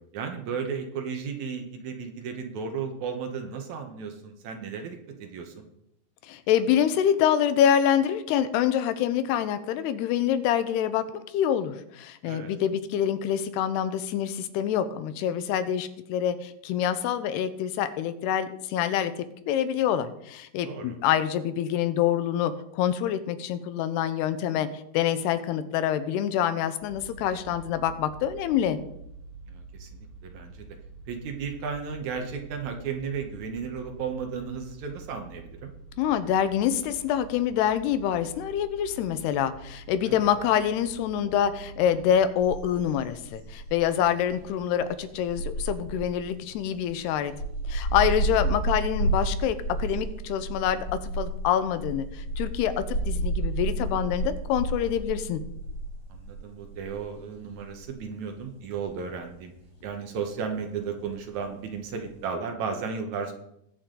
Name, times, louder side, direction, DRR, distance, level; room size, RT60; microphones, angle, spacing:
voice 1, 0.1-5.7 12.2-12.5 20.6-21.0 29.5-30.6 31.1-35.7 40.1-40.2 53.7-53.9 56.1-59.5 59.8-63.3, right 6 dB, 70° right, 4 dB, 1.8 m, -34 dB
voice 2, 6.3-11.0 11.3-19.1 19.5-28.8 36.0-47.3 47.7-50.9 51.2-55.4, left 9 dB, 85° left, 12 dB, 2.8 m, -26 dB
sound 1, 26.8-42.2, right 3 dB, 45° right, 7.1 m, -46 dB
sound 2, 42.4-62.2, right 2 dB, 25° left, 4.0 m, -32 dB
21.0 x 7.1 x 3.8 m, 0.79 s
omnidirectional pair, 4.7 m